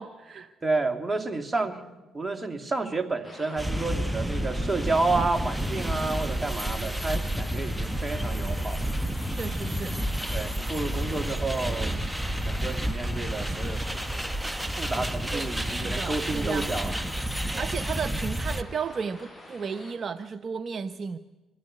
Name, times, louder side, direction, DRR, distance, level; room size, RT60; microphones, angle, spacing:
voice 1, 0.0-0.5 9.3-10.0 15.0-15.1 15.3-17.0 17.6-21.2, right 6 dB, 50° right, 10 dB, 0.8 m, -34 dB
voice 2, 0.6-1.8 2.1-8.9 10.3-12.0 12.4-14.4 14.8-16.9 17.5-17.6, right 3 dB, 20° right, 7 dB, 2.5 m, -30 dB
sound 1, 3.2-19.9, left 1 dB, 10° left, 7.7 m, -46 dB
sound 2, 3.6-18.6, right 1 dB, 5° right, 1.2 m, -30 dB
24.0 x 15.5 x 9.8 m, 1.2 s
supercardioid pair, 65°, 0 cm